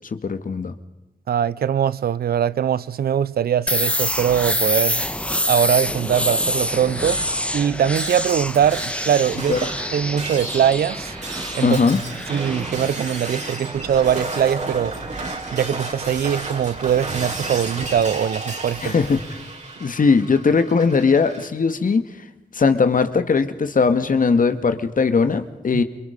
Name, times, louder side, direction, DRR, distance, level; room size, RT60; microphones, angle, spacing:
voice 1, 0.1-0.8 9.5-9.7 11.6-12.0 18.8-19.2 19.8-22.0 22.5-25.8, left 5 dB, 60° left, 1.9 m, -19 dB
voice 2, 1.3-5.0 5.5-7.2 7.5-11.1 11.5-11.8 12.3-14.9 15.5-18.9 25.7-25.8, right 9 dB, 80° right, 0.7 m, -21 dB
sound 1, 3.7-15.3, left 1 dB, 5° left, 1.6 m, -27 dB
Shatter, 5.9-21.5, right 2 dB, 50° right, 5.5 m, -33 dB
28.5 x 23.0 x 5.3 m
cardioid pair, 50°, 16 cm